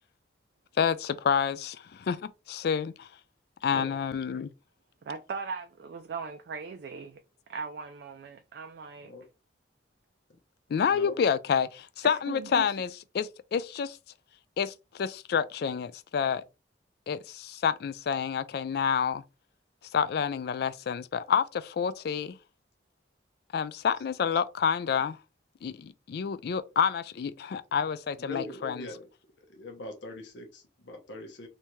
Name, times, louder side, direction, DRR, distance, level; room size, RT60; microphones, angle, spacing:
voice 1, 0.8-2.2 2.5-3.1 3.6-4.5 10.7-14.0 14.6-16.4 17.1-19.2 19.9-22.4 23.5-25.2 25.6-28.7, left 7 dB, 60° left, 0.3 m, -28 dB
voice 2, 5.0-7.2 7.5-9.1 12.0-12.6, right 5 dB, 60° right, 0.3 m, -39 dB
voice 3, 10.9-11.2 28.2-29.1 29.4-31.5, left 2 dB, 75° left, 0.8 m, -42 dB
3.4 x 2.7 x 3.0 m
head